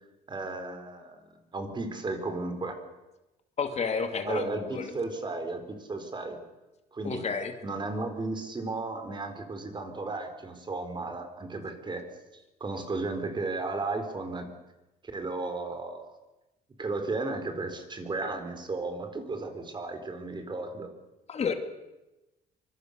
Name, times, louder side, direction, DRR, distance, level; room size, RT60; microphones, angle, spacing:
voice 1, 0.3-1.2 1.5-2.8 4.3-6.4 6.9-7.2 7.6-12.1 12.3-14.5 15.1-16.2 16.8-20.9, right 3 dB, 25° right, 7 dB, 4.1 m, -34 dB
voice 2, 3.6-4.9 7.0-7.5 21.3-21.6, left 5 dB, 40° left, 7 dB, 2.4 m, -31 dB
24.5 x 22.5 x 6.6 m, 1.0 s
cardioid pair, 110°, 17 cm